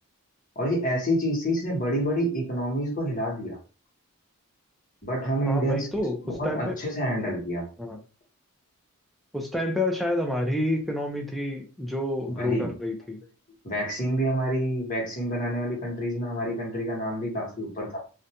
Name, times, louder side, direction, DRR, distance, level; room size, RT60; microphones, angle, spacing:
voice 1, 0.5-3.6 5.0-5.9 6.2-7.7 12.3-12.7 13.6-18.0, equal, 40° left, -2 dB, 1.1 m, -28 dB
voice 2, 5.5-6.8 7.8-8.0 9.3-13.2, left 1 dB, ahead, 3 dB, 0.4 m, -29 dB
2.5 x 2.2 x 2.8 m, 0.34 s
head